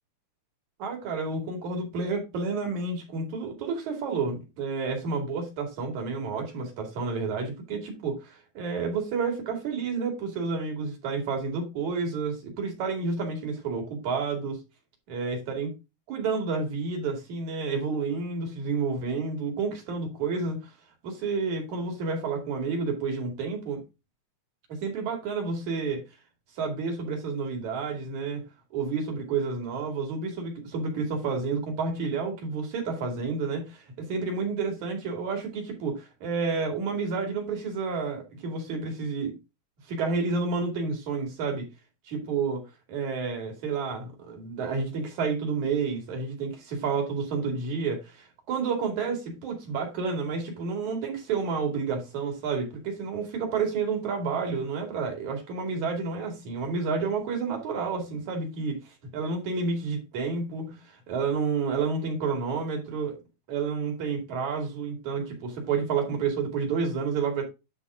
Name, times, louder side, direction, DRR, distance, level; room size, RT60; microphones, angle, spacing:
voice 1, 0.8-14.6 15.1-15.7 16.1-20.7 21.0-23.8 24.7-26.0 26.6-28.4 28.7-39.3 39.9-41.7 42.1-42.6 42.9-63.2 63.5-67.5, right 4 dB, 75° right, 3.6 m, -30 dB
9.7 x 3.7 x 4.8 m
omnidirectional pair, 3.4 m